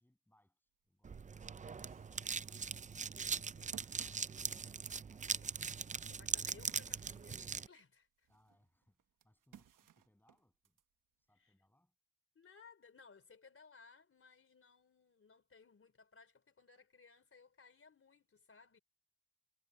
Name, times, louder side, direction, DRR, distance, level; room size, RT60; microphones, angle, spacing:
voice 1, 0.0-2.7 5.1-5.4 8.3-10.8 11.2-11.9, left 1 dB, 5° left, 7.9 m, -75 dB
sound 1, 0.9-1.0 1.4-7.8 8.2-10.8, right 10 dB, 80° right, 1.2 m, -62 dB
sound 2, 1.0-7.7, right 5 dB, 25° right, 0.4 m, -41 dB
voice 2, 1.6-2.3 3.1-3.8 5.2-5.5 6.1-8.3 11.4-11.5 12.4-18.8, left 5 dB, 45° left, 3.8 m, -62 dB
wide cardioid pair, 130°, 32 cm